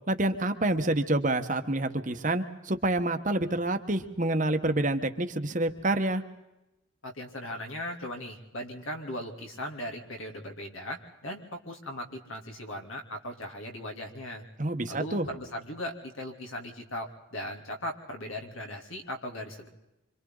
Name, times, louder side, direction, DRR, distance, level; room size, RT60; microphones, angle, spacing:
voice 1, 0.1-6.2 14.6-15.3, right 2 dB, 40° right, 8 dB, 1.2 m, -27 dB
voice 2, 7.0-14.4 14.9-19.7, left 1 dB, 80° left, 3 dB, 3.2 m, -38 dB
26.5 x 26.0 x 4.0 m, 0.95 s
head